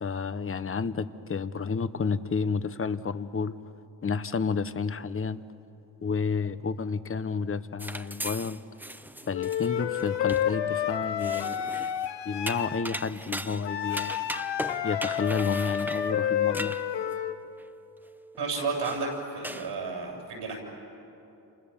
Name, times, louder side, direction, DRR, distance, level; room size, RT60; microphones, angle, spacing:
voice 1, 0.0-3.6 4.0-5.4 6.0-8.6 9.3-11.6 12.2-14.2 14.8-16.8, left 5 dB, 30° left, 13 dB, 1.0 m, -30 dB
sound 1, 7.8-10.5 11.2-12.1 12.5-17.1 17.6-17.7 18.3-18.4 18.8-19.1 19.4-19.7, right 1 dB, 5° right, 0.7 m, -38 dB
Wind instrument woodwind instrument, 9.3-12.9 13.6-17.4, left 9 dB, 90° left, 1.4 m, -30 dB
voice 2, 18.4-20.6, right 4 dB, 80° right, 0 dB, 7.9 m, -32 dB
29.0 x 28.0 x 7.2 m, 2.9 s
cardioid pair, 85°, 41 cm